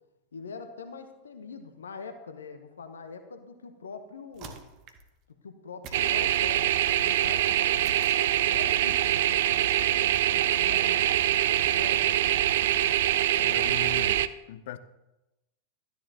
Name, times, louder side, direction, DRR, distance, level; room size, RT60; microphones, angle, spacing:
voice 1, 0.3-4.6 5.4-7.8 8.2-11.2 11.7-12.4, left 5 dB, 70° left, 1.0 m, -43 dB
sound 1, 4.3-5.1 5.8-6.8 7.8-8.7, right 5 dB, 40° right, 1.1 m, -47 dB
sound 2, 5.9-14.3, right 12 dB, 55° right, 0.4 m, -24 dB
voice 2, 13.4-14.8, left 11 dB, 55° left, 0.6 m, -40 dB
13.0 x 9.9 x 2.9 m
figure-of-eight pair, 90°, 0 cm